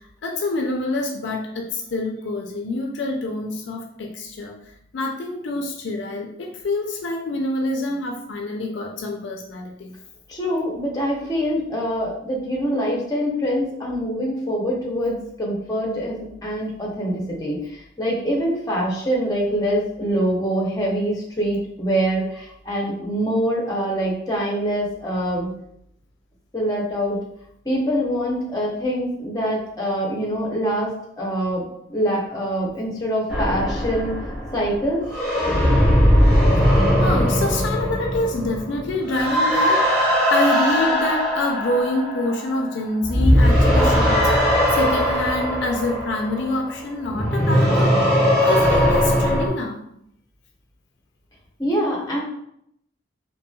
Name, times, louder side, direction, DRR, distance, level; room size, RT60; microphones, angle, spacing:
voice 1, 0.2-4.5 4.9-9.9 37.0-49.8, left 2 dB, 65° left, 2 dB, 0.4 m, -26 dB
voice 2, 10.3-17.6 18.0-25.5 26.5-27.2 27.6-30.9 31.2-31.6 31.9-34.1 34.5-35.1 51.6-52.2, equal, 20° left, -3 dB, 0.7 m, -24 dB
sound 1, 33.3-42.7 43.0-49.5, equal, ahead, 1.3 m, -19 dB
2.9 x 2.6 x 2.3 m, 0.73 s
head